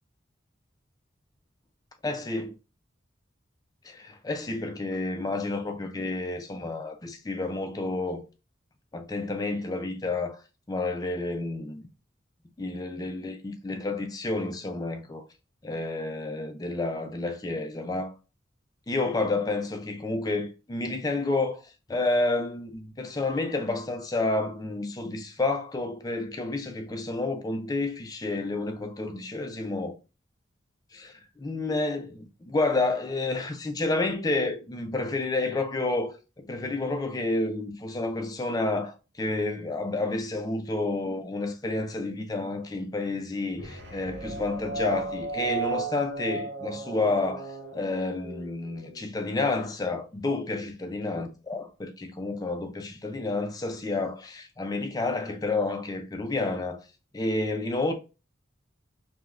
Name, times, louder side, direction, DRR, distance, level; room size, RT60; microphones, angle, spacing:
voice 1, 2.0-2.6 3.8-8.2 8.9-10.4 10.7-11.9 12.6-15.2 15.6-18.1 18.9-29.9 30.9-56.8 57.1-57.9, left 2 dB, 20° left, 0.3 m, -30 dB
sound 1, 43.5-49.1, right 4 dB, 60° right, 0.6 m, -35 dB
3.3 x 2.2 x 2.4 m
head